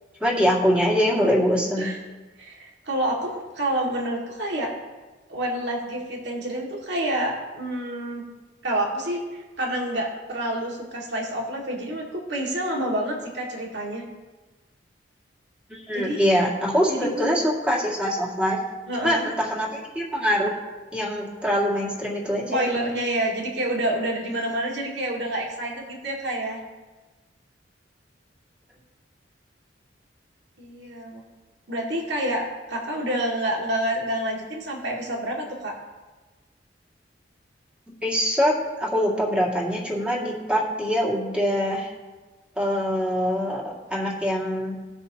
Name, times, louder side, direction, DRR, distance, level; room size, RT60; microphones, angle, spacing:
voice 1, 0.2-1.9 15.9-18.6 19.0-20.5 20.9-22.7 38.0-41.9 42.6-44.7, equal, 5° right, -4 dB, 2.2 m, -24 dB
voice 2, 2.4-4.7 5.3-8.2 8.6-14.1 15.9-16.2 16.9-17.4 18.9-19.4 22.5-26.6 30.6-31.2 31.7-35.7, right 1 dB, 70° right, -2 dB, 2.2 m, -28 dB
18.0 x 6.7 x 2.9 m, 1.2 s
head